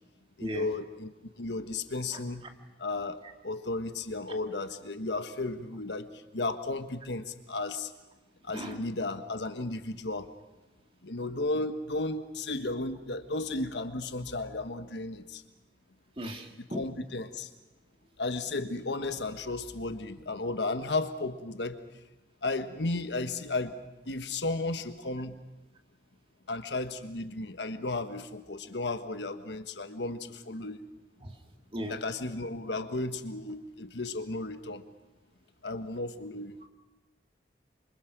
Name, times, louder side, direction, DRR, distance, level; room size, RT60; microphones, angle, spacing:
voice 1, 0.4-1.1 1.4-2.5 2.8-6.1 6.3-7.9 8.4-10.3 11.0-15.4 16.6-17.5 18.2-21.8 22.4-23.8 24.1-25.4 26.5-30.8 31.9-34.8 35.6-36.6, left 2 dB, 80° left, 9 dB, 1.4 m, -34 dB
voice 2, 16.2-16.8 31.2-31.3 31.7-32.0, equal, 30° right, 4 dB, 2.0 m, -37 dB
26.5 x 25.0 x 6.1 m, 1.0 s
head